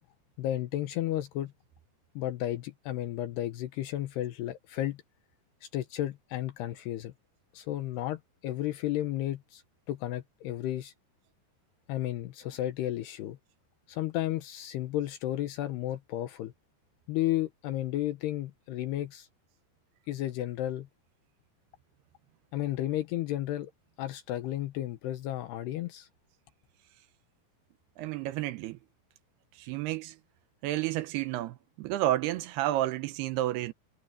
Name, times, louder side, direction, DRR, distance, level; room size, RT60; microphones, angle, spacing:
voice 1, 0.4-1.5 2.2-5.0 5.6-7.1 7.5-9.6 9.9-10.9 11.9-13.4 13.9-16.5 17.1-19.3 20.1-20.9 22.5-23.7 24.0-26.1, left 14 dB, 75° left, 2.9 m, -33 dB
voice 2, 28.0-28.8 29.6-30.1 30.6-33.7, right 14 dB, 75° right, 2.6 m, -31 dB
omnidirectional pair, 5.1 m